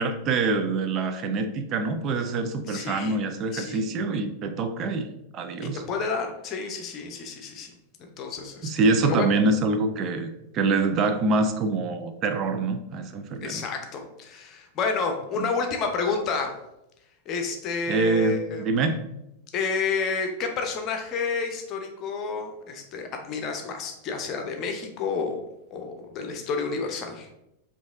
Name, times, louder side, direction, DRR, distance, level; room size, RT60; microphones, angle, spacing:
voice 1, 0.0-5.8 8.6-13.6 15.4-15.5 17.9-19.0, right 3 dB, 35° right, 8 dB, 0.5 m, -25 dB
voice 2, 2.7-3.2 3.5-3.9 5.9-7.7 8.0-8.7 9.0-9.3 13.4-16.5 17.3-18.6 19.5-25.4 25.7-27.3, left 5 dB, 35° left, 4 dB, 0.7 m, -30 dB
5.0 x 2.7 x 3.5 m, 0.87 s
figure-of-eight pair, 90°, 0 cm